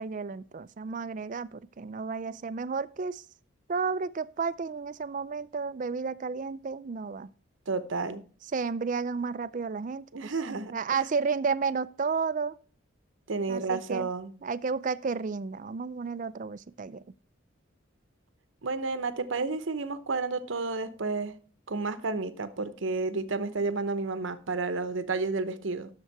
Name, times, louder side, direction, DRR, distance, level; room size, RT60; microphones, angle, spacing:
voice 1, 0.0-3.2 3.7-7.3 8.5-12.6 13.5-14.1 14.4-17.0, right 5 dB, 40° right, 0.4 m, -32 dB
voice 2, 7.7-8.2 10.1-11.1 13.3-14.3 18.6-21.3 21.7-25.9, right 3 dB, 65° right, 0.8 m, -31 dB
11.0 x 6.8 x 4.6 m
head